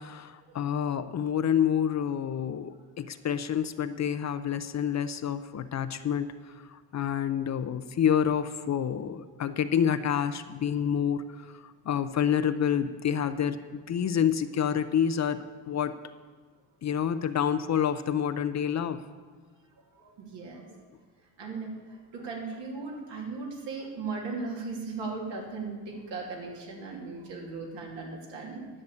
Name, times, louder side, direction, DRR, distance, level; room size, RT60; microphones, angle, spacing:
voice 1, 0.0-15.9 16.8-19.0, left 8 dB, 40° left, 11 dB, 0.6 m, -28 dB
voice 2, 19.9-20.8 21.4-28.7, right 4 dB, 70° right, 0 dB, 2.8 m, -37 dB
11.0 x 6.6 x 8.4 m, 1.4 s
cardioid pair, 95°, 44 cm